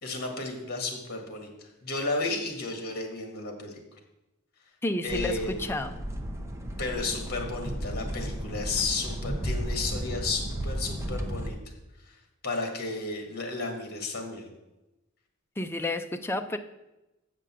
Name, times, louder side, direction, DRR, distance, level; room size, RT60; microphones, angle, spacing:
voice 1, 0.0-3.8 5.0-5.7 6.8-11.6 12.0-12.2 12.4-14.5, left 3 dB, 50° left, 3 dB, 1.7 m, -33 dB
voice 2, 4.8-6.0 15.6-16.6, left 1 dB, 10° left, 6 dB, 0.5 m, -31 dB
sound 1, 5.1-11.5, equal, 15° right, 0.8 m, -34 dB
7.7 x 5.3 x 7.5 m, 0.97 s
head